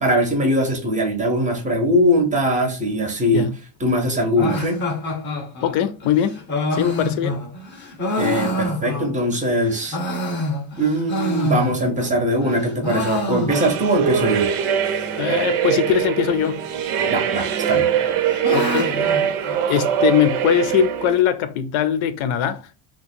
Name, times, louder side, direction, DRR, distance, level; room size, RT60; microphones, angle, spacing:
voice 1, 0.0-3.5 3.8-4.8 8.2-10.0 10.8-14.5 17.1-17.9, equal, 15° right, 0.6 m, -21 dB
sound 1, 4.4-9.4 9.7-12.1 12.4-14.0 14.2-14.3 14.5-14.6 15.3-15.7 16.7-17.3 17.7-20.1, left 1 dB, 25° left, 0.7 m, -27 dB
voice 2, 5.6-6.4 6.7-7.4 15.2-16.6 18.5-19.0 19.7-22.7, left 10 dB, 85° left, 0.6 m, -21 dB
sound 2, 13.5-21.2, right 8 dB, 85° right, 0.7 m, -22 dB
2.9 x 2.2 x 4.2 m
cardioid pair, 160°, 48 cm